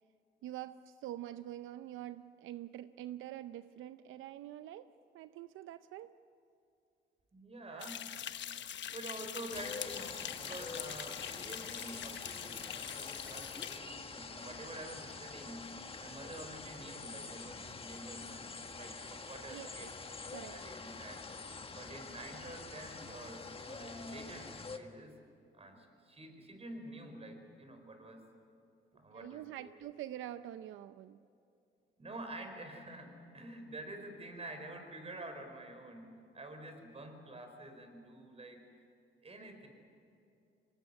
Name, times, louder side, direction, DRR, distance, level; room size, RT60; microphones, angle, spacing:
voice 1, 0.4-6.1 7.7-7.9 19.5-19.9 20.3-20.5 29.1-31.2, right 13 dB, 85° right, 12 dB, 0.6 m, -46 dB
voice 2, 7.3-8.1 8.9-19.9 20.5-21.2 21.7-25.1 25.5-28.2 28.9-29.7 32.0-38.6 39.2-39.7, right 1 dB, 30° right, 6 dB, 4.8 m, -48 dB
sound 1, 7.8-13.8, left 10 dB, 65° left, 1.0 m, -43 dB
sound 2, 9.5-24.8, left 4 dB, 30° left, 1.6 m, -46 dB
24.0 x 19.5 x 9.9 m, 2.6 s
cardioid pair, 90°, 20 cm